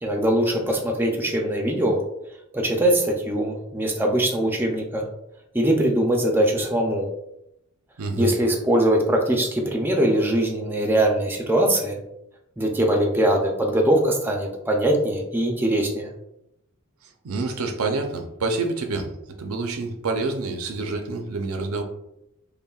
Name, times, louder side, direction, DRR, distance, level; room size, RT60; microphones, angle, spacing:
voice 1, 0.0-2.0 2.5-5.0 5.5-7.1 8.2-12.0 12.6-16.1, right 1 dB, 10° right, 1 dB, 0.4 m, -22 dB
voice 2, 8.0-8.3 17.2-19.1 19.4-21.8, right 3 dB, 85° right, 4 dB, 0.5 m, -27 dB
5.4 x 2.2 x 2.3 m, 0.84 s
head